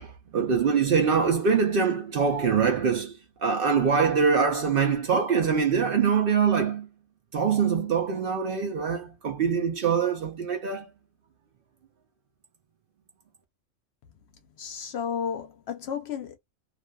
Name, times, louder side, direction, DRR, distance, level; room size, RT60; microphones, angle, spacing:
voice 1, 0.0-6.9 7.3-10.9, right 6 dB, 60° right, 0.6 m, -24 dB
voice 2, 14.6-16.4, left 7 dB, 65° left, 0.8 m, -32 dB
2.4 x 2.3 x 2.2 m
omnidirectional pair, 1.3 m